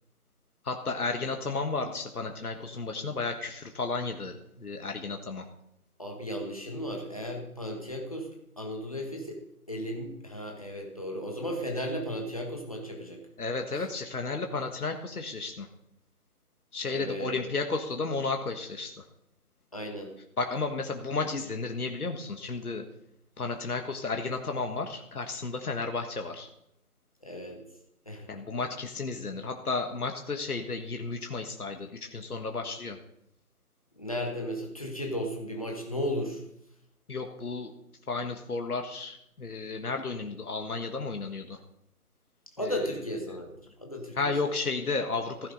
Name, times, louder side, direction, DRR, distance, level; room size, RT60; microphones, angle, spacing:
voice 1, 0.6-5.5 13.4-15.7 16.7-19.0 20.4-22.8 23.4-26.5 28.3-33.0 37.1-37.7 38.1-41.6 42.6-42.8 43.3-43.4 44.1-45.5, left 3 dB, 75° left, 4 dB, 1.5 m, -33 dB
voice 2, 6.0-13.3 13.8-13.9 16.9-17.4 19.7-20.1 27.2-27.7 28.0-28.3 33.9-36.4 42.6-44.3, equal, 25° left, 1 dB, 1.5 m, -35 dB
15.0 x 10.0 x 3.9 m, 0.78 s
figure-of-eight pair, 180°, 45 cm